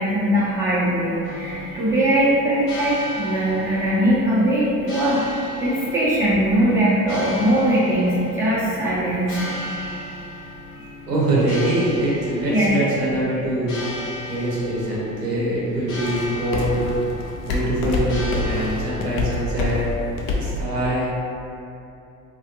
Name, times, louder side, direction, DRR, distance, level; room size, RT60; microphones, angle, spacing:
voice 1, 0.0-10.1 10.8-10.9 12.5-12.7 20.4-20.5, right 1 dB, 5° right, -9 dB, 0.7 m, -21 dB
sound 1, 1.1-20.6, left 2 dB, 50° left, 0.5 m, -33 dB
sound 2, 1.2-20.5, equal, 85° left, 0.9 m, -36 dB
voice 2, 11.1-13.8 14.3-16.9 17.5-19.8 20.4-21.1, right 1 dB, 90° right, -7 dB, 0.8 m, -23 dB
2.4 x 2.3 x 2.7 m, 2.8 s
hypercardioid pair, 70°, 46 cm